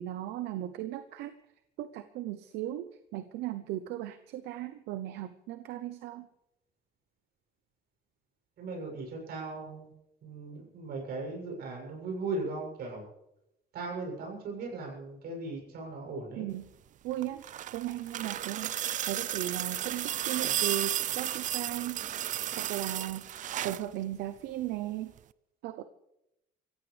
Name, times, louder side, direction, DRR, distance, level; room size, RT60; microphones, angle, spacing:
voice 1, 0.0-1.3 1.8-6.3 16.4-16.7 17.0-17.4 17.7-18.7 19.1-22.0 22.6-23.2 23.6-25.1 25.6-25.8, right 13 dB, 85° right, 11 dB, 0.8 m, -36 dB
voice 2, 8.6-9.9 10.2-13.1 13.7-16.5 20.4-20.6, right 3 dB, 65° right, 0 dB, 7.6 m, -38 dB
sound 1, 17.1-23.9 25.2-25.3, right 11 dB, 50° right, 0.5 m, -33 dB
25.0 x 15.5 x 3.4 m, 0.87 s
cardioid pair, 110°, 17 cm